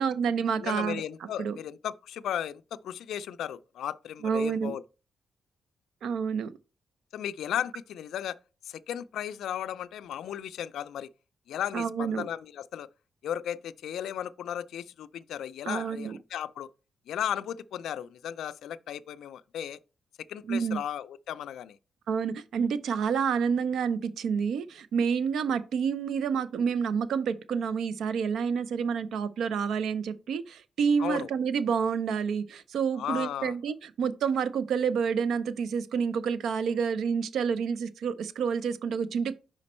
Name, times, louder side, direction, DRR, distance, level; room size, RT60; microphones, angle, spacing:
voice 1, 0.0-1.0 1.4-1.6 4.2-4.7 6.0-6.5 11.7-12.3 15.7-16.2 20.5-20.8 22.1-39.4, right 6 dB, 80° right, 0.5 m, -28 dB
voice 2, 0.6-4.8 7.1-8.4 8.6-11.1 11.5-12.9 13.2-16.7 17.1-19.8 20.3-21.8 31.0-31.3 33.0-33.6, left 10 dB, 90° left, 0.3 m, -35 dB
5.2 x 5.0 x 4.2 m
cardioid pair, 135°, 0 cm